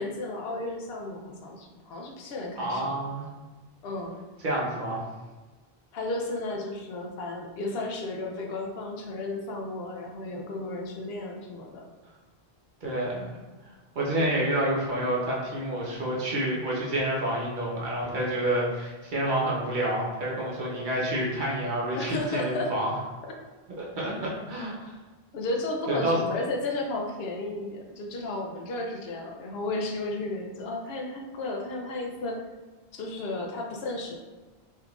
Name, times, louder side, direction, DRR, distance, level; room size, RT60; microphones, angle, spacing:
voice 1, 0.0-3.0 3.8-4.2 5.9-11.8 21.9-22.7 25.3-32.4 32.9-34.1, left 2 dB, 75° left, 1 dB, 0.8 m, -33 dB
voice 2, 2.6-3.3 4.4-5.0 12.8-13.4 14.0-22.9 23.8-24.9 25.9-26.2, right 1 dB, 55° right, -4 dB, 0.9 m, -28 dB
3.5 x 2.8 x 2.3 m, 1.3 s
omnidirectional pair, 1.1 m